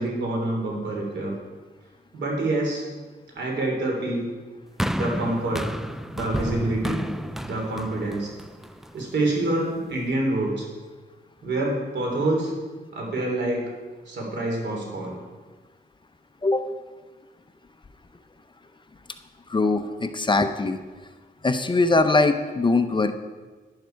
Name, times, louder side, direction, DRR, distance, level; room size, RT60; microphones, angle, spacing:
voice 1, 0.0-1.3 2.1-2.8 3.3-4.3 4.9-5.6 6.1-7.0 7.4-8.3 8.9-10.7 11.4-12.5 12.9-13.7 14.0-15.2, right 2 dB, 85° right, -1 dB, 3.4 m, -26 dB
sound 1, 4.8-9.1 9.9-10.0, equal, ahead, 0.4 m, -30 dB
voice 2, 19.5-20.8 21.4-23.1, left 3 dB, 25° left, 8 dB, 0.7 m, -21 dB
11.5 x 10.5 x 4.6 m, 1.3 s
wide cardioid pair, 100°, 18 cm